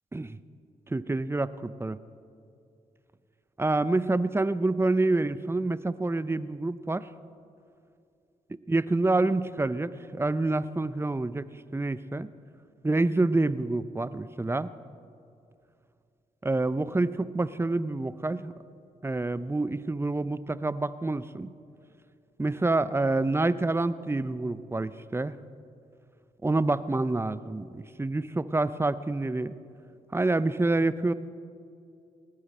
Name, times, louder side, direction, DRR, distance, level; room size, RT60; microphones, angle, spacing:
voice 1, 0.9-2.0 3.6-7.1 8.7-11.5 11.7-12.3 12.8-14.7 16.4-18.5 19.0-21.5 22.4-25.4 26.4-29.5 30.1-31.1, right 2 dB, 15° right, 16 dB, 0.6 m, -27 dB
19.0 x 14.5 x 4.3 m, 2.5 s
supercardioid pair, 45°, 16 cm